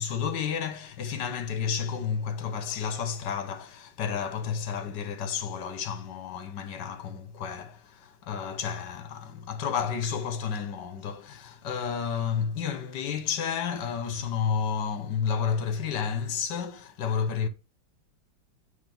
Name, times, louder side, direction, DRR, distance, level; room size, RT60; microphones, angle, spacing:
voice 1, 0.0-17.5, left 7 dB, 70° left, 1.5 m, -31 dB
8.4 x 3.5 x 5.3 m
omnidirectional pair, 2.0 m